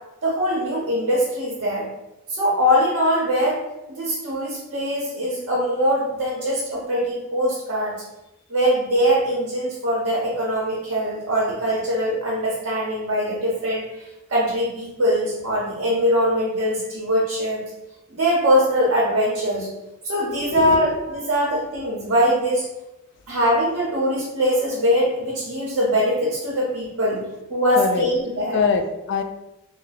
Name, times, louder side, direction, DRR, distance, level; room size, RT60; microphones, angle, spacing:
voice 1, 0.2-1.9 2.3-3.6 3.9-7.9 8.5-17.6 18.1-19.7 20.0-22.7 23.3-28.6, equal, 60° right, -4 dB, 0.8 m, -22 dB
voice 2, 20.4-21.2 27.8-28.0 28.5-29.2, left 5 dB, 55° left, 7 dB, 0.3 m, -24 dB
2.8 x 2.1 x 3.9 m, 0.96 s
head